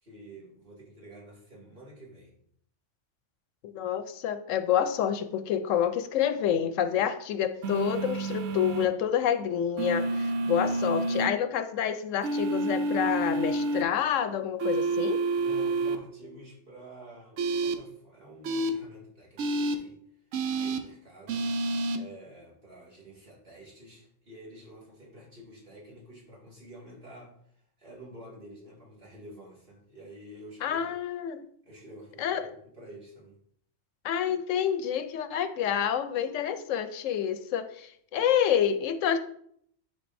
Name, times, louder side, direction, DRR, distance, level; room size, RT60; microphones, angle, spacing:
voice 1, 0.0-2.4 10.4-10.7 15.3-20.0 20.5-21.5 21.9-31.0 31.6-32.5 32.7-33.4, right 1 dB, 45° right, -5 dB, 2.4 m, -49 dB
voice 2, 3.6-15.2 30.6-31.4 32.2-32.4 34.0-39.2, left 9 dB, 85° left, 10 dB, 1.0 m, -28 dB
sound 1, 7.6-8.9 9.8-11.3 12.2-13.8 14.6-16.0 17.4-17.7 18.4-18.7 19.4-19.7 20.3-20.8 21.3-22.0, right 2 dB, 85° right, 1.0 m, -29 dB
9.8 x 3.9 x 2.6 m, 0.66 s
omnidirectional pair, 1.3 m